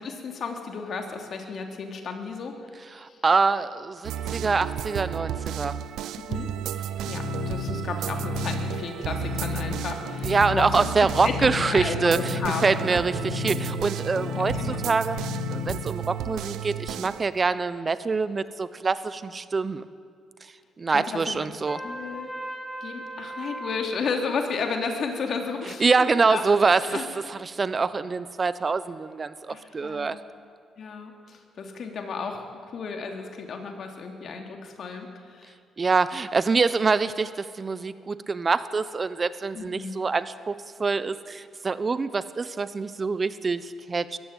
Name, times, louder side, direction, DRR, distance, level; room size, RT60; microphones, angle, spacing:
voice 1, 0.0-2.7 2.9-3.2 6.2-6.5 6.8-13.0 13.4-13.5 14.3-14.8 20.9-21.5 21.8-22.3 22.8-26.4 26.8-27.1 29.5-30.2 30.8-35.5 39.5-40.0, left 5 dB, 60° left, 3 dB, 3.3 m, -33 dB
voice 2, 2.9-5.7 10.2-15.2 15.5-19.8 20.8-21.8 25.8-27.0 27.3-30.2 35.8-44.2, right 4 dB, 35° right, 14 dB, 1.0 m, -25 dB
sound 1, 4.0-17.2, right 10 dB, 85° right, 0.8 m, -33 dB
sound 2, 7.0-15.9, left 10 dB, 75° left, 0.7 m, -34 dB
Trumpet, 21.7-23.9, right 1 dB, ahead, 2.8 m, -37 dB
22.0 x 14.5 x 9.3 m, 2.2 s
cardioid pair, 90°, 0 cm